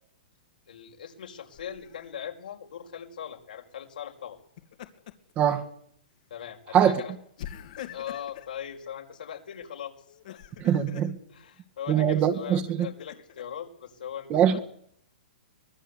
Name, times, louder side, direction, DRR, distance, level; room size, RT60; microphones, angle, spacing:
voice 1, 0.7-4.4 6.3-7.1 7.9-10.0 10.3-10.4 11.3-14.6, left 9 dB, 80° left, 5.3 m, -40 dB
Laughter, 1.5-2.1 4.4-5.3 5.7-5.9 7.4-8.5 10.1-11.1 12.2-13.4, left 11 dB, 60° left, 2.4 m, -44 dB
voice 2, 10.6-11.1 11.9-12.9 14.3-14.6, right 9 dB, 25° right, 2.0 m, -22 dB
24.0 x 19.5 x 8.4 m
hypercardioid pair, 150°, 5 cm